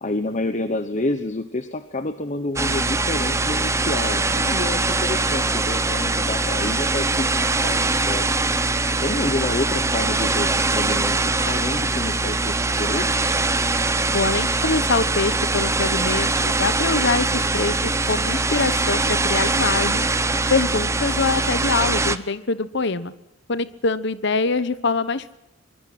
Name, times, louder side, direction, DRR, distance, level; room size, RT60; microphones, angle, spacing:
voice 1, 0.0-8.3 9.0-13.3, left 2 dB, 40° left, 10 dB, 1.1 m, -28 dB
sound 1, 2.6-22.2, right 3 dB, 15° right, 0.9 m, -22 dB
voice 2, 14.1-20.1 20.5-23.1 23.5-25.4, left 4 dB, 60° left, 14 dB, 1.1 m, -24 dB
24.5 x 23.0 x 5.9 m, 0.89 s
head